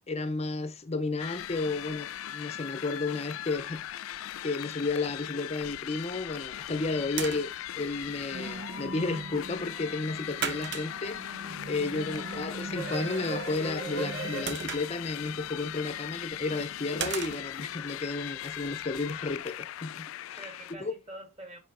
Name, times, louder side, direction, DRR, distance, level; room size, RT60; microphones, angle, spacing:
voice 1, 0.1-3.8 4.4-20.5 20.8-21.0, left 3 dB, 30° left, 0.6 m, -33 dB
sound 1, 1.2-20.7, left 12 dB, 80° left, 0.3 m, -39 dB
sound 2, 6.4-19.4, right 7 dB, 55° right, 0.8 m, -42 dB
voice 2, 6.9-7.3 11.8-12.5 20.4-21.6, right 1 dB, 30° right, 2.1 m, -47 dB
sound 3, 8.3-14.4, right 2 dB, 85° right, 1.1 m, -39 dB
5.2 x 5.0 x 3.7 m
head